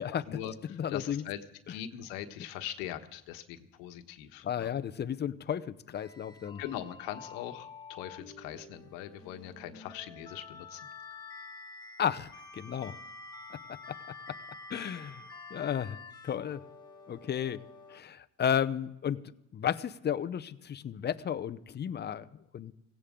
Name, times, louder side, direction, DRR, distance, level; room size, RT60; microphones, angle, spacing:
voice 1, 0.0-1.4 1.7-4.8 6.6-10.9, left 11 dB, 85° left, 7 dB, 1.4 m, -41 dB
voice 2, 0.8-1.2 4.4-6.6 12.0-13.0 14.7-15.2 15.5-16.0 16.2-16.6 17.1-17.6 17.9-19.2 19.5-22.3 22.5-22.7, left 9 dB, 30° left, 12 dB, 0.7 m, -33 dB
sound 1, 5.9-18.0, left 3 dB, 10° left, 1.7 m, -49 dB
17.0 x 17.0 x 3.7 m, 0.86 s
cardioid pair, 120°, 35 cm